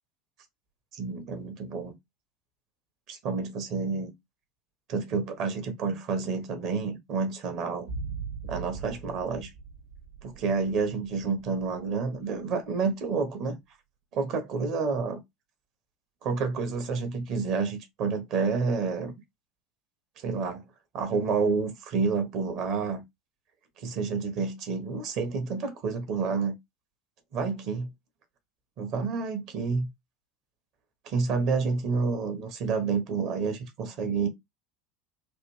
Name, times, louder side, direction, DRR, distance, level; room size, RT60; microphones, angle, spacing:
voice 1, 0.9-1.9 3.1-4.1 4.9-7.9 8.4-9.5 10.2-13.5 14.1-15.2 16.2-19.1 20.2-20.6 20.9-23.0 23.8-26.5 27.3-27.9 28.8-29.9 31.0-34.3, right 4 dB, 55° right, 1.1 m, -29 dB
sound 1, 7.9-12.1 12.4-12.5, right 5 dB, 75° right, 0.8 m, -40 dB
3.3 x 2.5 x 3.1 m
figure-of-eight pair, 75°, 0 cm